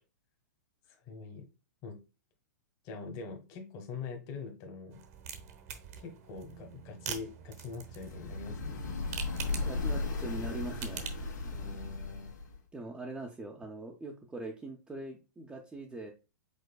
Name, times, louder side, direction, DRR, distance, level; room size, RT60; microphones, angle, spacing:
voice 1, 1.1-1.5 1.8-2.0 2.8-5.0 6.0-8.9 11.5-12.3, left 4 dB, 35° left, 4 dB, 1.1 m, -43 dB
sound 1, 4.9-11.3, right 8 dB, 55° right, 0.9 m, -45 dB
sound 2, 7.9-12.6, left 3 dB, 85° left, 1.7 m, -36 dB
voice 2, 9.5-11.1 12.7-16.1, right 2 dB, 10° right, 0 dB, 0.5 m, -42 dB
5.3 x 3.7 x 2.2 m, 0.30 s
hypercardioid pair, 130°, 10 cm